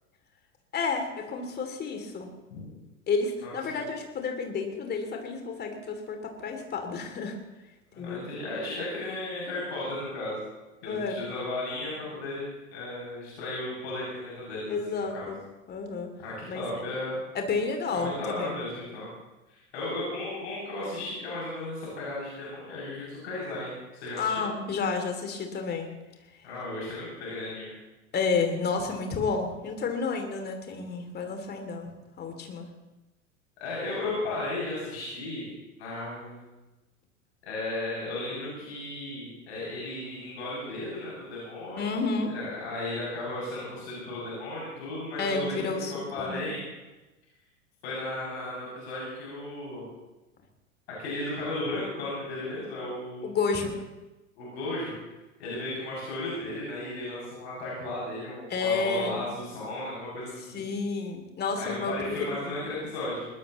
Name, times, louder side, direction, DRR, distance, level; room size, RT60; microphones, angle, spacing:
voice 1, 0.7-2.3 3.1-7.4 8.0-8.3 10.9-11.2 14.7-15.4 15.7-16.1 16.5-16.6 17.3-18.6 24.1-25.9 28.1-31.9 32.2-32.7 41.8-42.3 45.2-46.5 53.2-53.8 58.5-59.3 60.5-61.9 62.2-62.6, left 4 dB, 25° left, 4 dB, 2.8 m, -30 dB
voice 2, 3.4-3.8 7.9-10.4 10.8-12.4 12.7-15.3 16.2-17.2 17.9-19.1 19.5-24.5 26.4-27.7 33.6-35.5 35.8-36.5 37.4-42.0 42.3-46.6 47.8-49.9 50.9-53.3 54.4-54.9 55.4-60.7 61.6-63.2, left 2 dB, 60° left, -6 dB, 7.4 m, -35 dB
21.5 x 19.0 x 3.1 m, 1.1 s
figure-of-eight pair, 85°, 38 cm